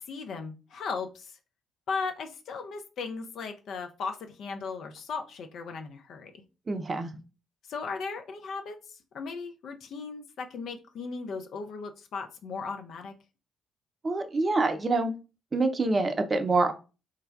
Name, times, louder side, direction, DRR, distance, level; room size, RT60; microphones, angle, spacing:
voice 1, 0.0-1.4 1.9-6.4 7.7-13.1, left 4 dB, 55° left, 5 dB, 0.5 m, -37 dB
voice 2, 6.7-7.1 14.0-15.1 15.5-16.7, right 3 dB, 30° right, 8 dB, 0.6 m, -26 dB
3.3 x 2.2 x 3.4 m, 0.31 s
figure-of-eight pair, 40°, 0 cm